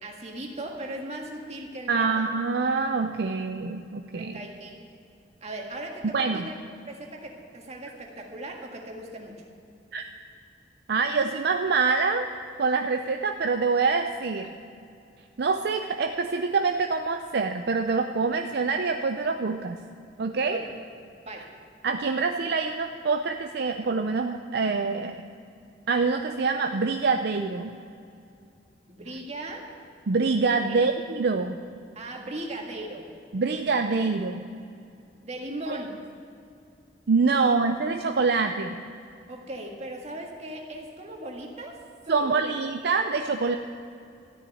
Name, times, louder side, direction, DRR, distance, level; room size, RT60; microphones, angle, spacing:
voice 1, 0.0-2.3 4.2-4.7 5.4-6.6 6.9-9.4 20.5-20.8 21.2-21.5 28.9-29.6 30.7-30.9 32.0-33.1 35.2-35.9 37.3-37.5 39.3-42.6, right 1 dB, 40° right, 1 dB, 1.8 m, -38 dB
voice 2, 1.9-4.4 6.1-6.5 9.9-10.1 10.9-12.3 12.6-14.5 15.4-19.8 20.2-20.6 21.8-25.2 25.9-27.7 30.1-31.6 33.3-34.4 35.7-35.8 37.1-38.8 42.1-43.6, right 4 dB, 65° right, 6 dB, 0.5 m, -25 dB
13.5 x 7.1 x 9.2 m, 2.5 s
head